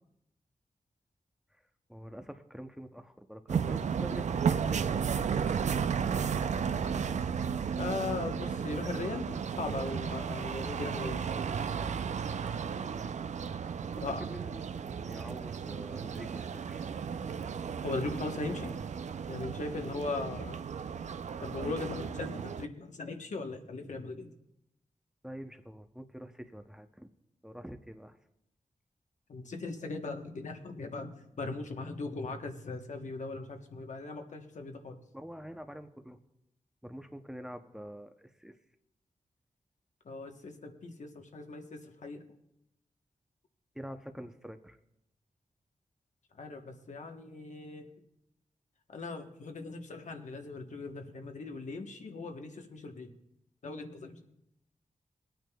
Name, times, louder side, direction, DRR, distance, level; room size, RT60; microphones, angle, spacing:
voice 1, 1.9-4.3 12.8-13.2 14.2-16.8 19.8-20.1 25.2-27.1 27.4-28.2 35.1-36.2 36.8-38.6 43.7-44.8, equal, 5° right, 7 dB, 0.6 m, -46 dB
sound 1, 3.5-22.7, right 7 dB, 65° right, 0.4 m, -34 dB
voice 2, 7.8-11.3 14.0-14.2 17.8-18.7 19.3-20.6 21.4-24.3 29.3-35.0 40.0-42.2 46.4-47.9 48.9-53.1 53.6-54.2, left 3 dB, 70° left, 4 dB, 1.0 m, -39 dB
22.5 x 9.1 x 2.3 m, 0.83 s
wide cardioid pair, 80°, 13 cm